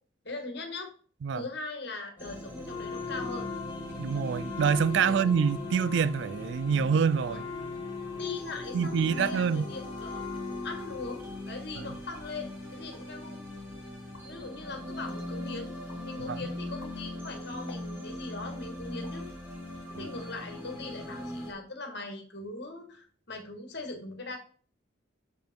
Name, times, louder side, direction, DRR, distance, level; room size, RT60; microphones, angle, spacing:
voice 1, 0.2-0.9 1.3-3.5 5.1-5.3 7.3-7.4 8.2-10.2 10.6-13.4 14.3-15.7 16.0-19.3 19.9-24.4, left 3 dB, 55° left, 1.9 m, -40 dB
sound 1, 2.2-21.5, left 1 dB, 10° right, 2.0 m, -40 dB
Wind instrument woodwind instrument, 2.6-11.5, left 6 dB, 15° left, 0.8 m, -41 dB
voice 2, 4.0-7.5 8.7-9.7 16.3-16.4 19.9-20.1, right 6 dB, 65° right, 0.3 m, -26 dB
sound 2, 12.9-13.2 13.7-13.8 14.0-14.5 15.0-15.4 15.9-16.2 16.6-18.3 19.0-19.3 19.9-20.8 21.3-21.5 21.8-22.3 22.5-23.0, left 3 dB, 75° left, 1.6 m, -56 dB
7.0 x 5.2 x 4.5 m
head